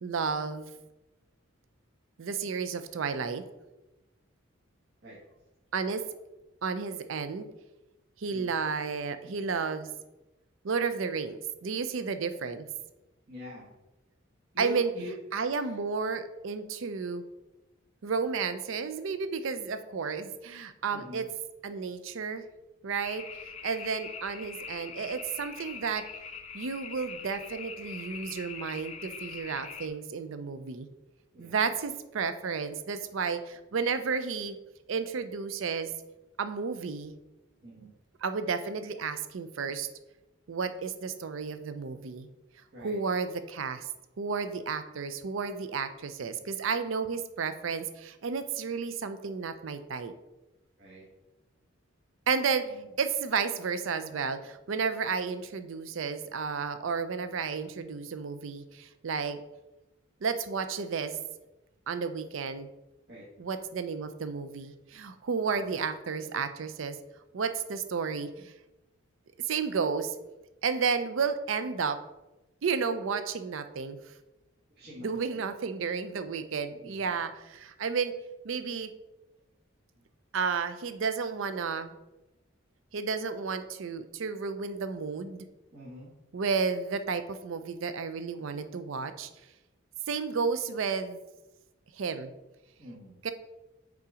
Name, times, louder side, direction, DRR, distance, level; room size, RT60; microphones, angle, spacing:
voice 1, 0.0-0.7 2.2-3.4 5.7-6.0 6.6-7.5 8.2-9.9 10.6-12.7 14.6-14.9 15.3-17.2 18.0-21.3 21.6-22.4 22.8-26.0 26.5-30.9 31.4-34.6 34.9-35.9 36.4-37.1 38.2-39.9 40.5-42.3 42.8-43.9 44.2-50.1 52.3-52.7 53.0-59.4 60.2-61.2 61.9-62.7 63.4-67.0 67.3-68.5 69.4-70.2 70.6-72.0 72.6-74.1 75.0-78.1 78.4-78.9 80.3-81.9 82.9-85.5 86.3-89.3 90.1-91.2 91.9-92.3 93.2-93.3, right 5 dB, 70° right, 10 dB, 0.5 m, -32 dB
voice 2, 13.3-13.7 14.5-15.2 15.5-15.7 20.9-21.3 31.3-31.7 37.6-37.9 42.7-43.0 50.8-51.1 52.6-52.9 63.1-63.3 65.5-65.7 74.7-75.5 76.8-77.2 79.9-80.1 85.7-86.1 92.8-93.2, equal, 50° right, -7 dB, 1.4 m, -44 dB
sound 1, 23.0-29.9, left 6 dB, 30° left, 0.4 m, -43 dB
5.6 x 3.9 x 4.9 m, 0.99 s
head